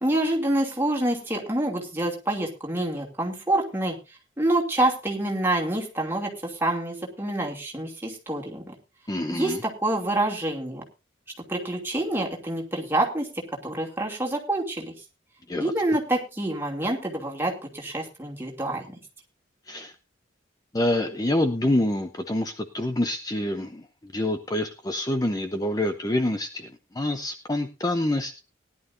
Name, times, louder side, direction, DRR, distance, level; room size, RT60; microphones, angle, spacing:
voice 1, 0.0-4.0 4.4-8.7 9.3-10.8 11.5-14.9 15.6-18.9, right 1 dB, 10° right, -1 dB, 2.7 m, -27 dB
voice 2, 9.1-9.6 15.5-15.7 19.7-19.9 20.7-26.7 26.9-28.4, left 1 dB, 20° left, 7 dB, 0.7 m, -26 dB
19.0 x 11.0 x 2.7 m, 0.28 s
head